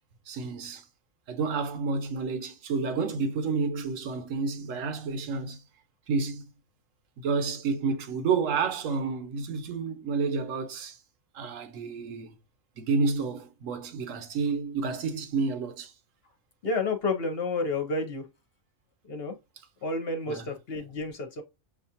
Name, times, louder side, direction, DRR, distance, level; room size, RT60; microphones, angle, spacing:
voice 1, 0.3-0.8 1.3-5.6 6.1-6.4 7.2-11.0 11.3-12.3 12.8-15.9 20.3-20.4, right 4 dB, 70° right, 1.1 m, -30 dB
voice 2, 16.6-18.3 19.1-19.4 19.8-21.4, left 3 dB, 50° left, 0.9 m, -30 dB
6.9 x 2.4 x 2.8 m
omnidirectional pair, 1.4 m